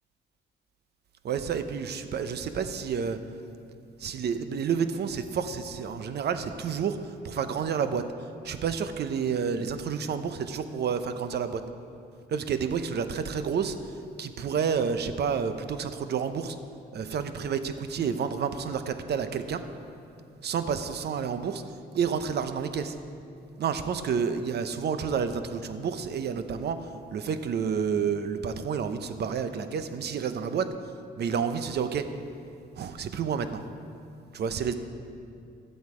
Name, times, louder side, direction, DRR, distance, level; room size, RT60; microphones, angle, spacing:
voice 1, 1.2-3.2 4.0-8.1 8.4-11.6 12.3-16.6 16.9-19.7 20.4-21.6 21.9-23.0 23.6-30.7 31.2-32.1 32.8-33.6 34.3-34.7, right 6 dB, 55° right, 10 dB, 0.7 m, -30 dB
11.5 x 8.0 x 4.9 m, 2.5 s
cardioid pair, 90°, 20 cm